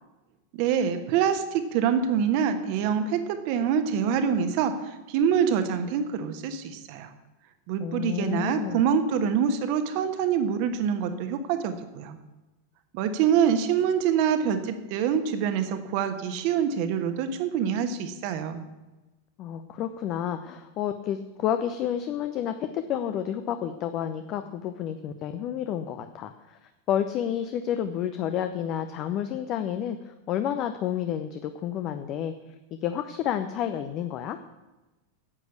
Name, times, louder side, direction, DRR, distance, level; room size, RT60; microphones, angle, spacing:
voice 1, 0.5-7.1 7.7-12.2 12.9-18.6, right 7 dB, 45° right, 8 dB, 1.3 m, -25 dB
voice 2, 7.8-8.8 19.4-26.6 26.9-34.4, left 10 dB, 35° left, 9 dB, 0.6 m, -30 dB
9.8 x 8.1 x 8.3 m, 1.1 s
figure-of-eight pair, 90°, 0 cm